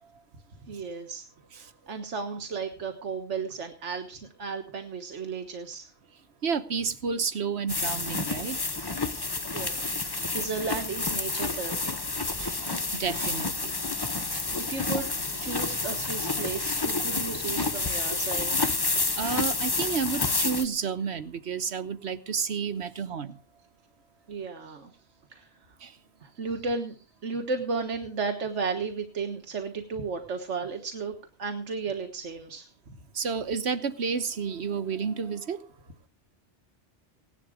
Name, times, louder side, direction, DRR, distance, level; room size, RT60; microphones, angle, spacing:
voice 1, 0.7-1.3 1.6-5.9 9.5-12.0 14.5-18.7 24.3-25.0 25.3-25.8 26.2-32.7, right 4 dB, 85° right, 5 dB, 1.7 m, -34 dB
voice 2, 6.4-8.6 12.4-12.6 12.9-13.8 14.3-14.5 19.1-23.4 25.8-25.9 33.1-35.6, right 6 dB, 65° right, 12 dB, 1.4 m, -31 dB
sound 1, 7.7-20.7, left 3 dB, 20° left, 0.9 m, -29 dB
17.5 x 11.0 x 5.0 m, 0.37 s
omnidirectional pair, 1.2 m